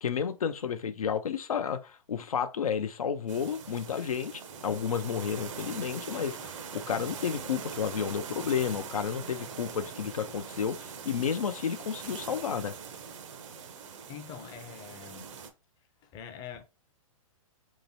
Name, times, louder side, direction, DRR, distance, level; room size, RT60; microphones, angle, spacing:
voice 1, 0.0-12.7, left 7 dB, 85° left, 0.4 m, -31 dB
sound 1, 3.3-15.5, right 6 dB, 60° right, 0.6 m, -42 dB
voice 2, 14.1-15.3 16.0-16.6, left 8 dB, 25° left, 0.4 m, -44 dB
3.1 x 2.9 x 2.7 m
hypercardioid pair, 120°, 18 cm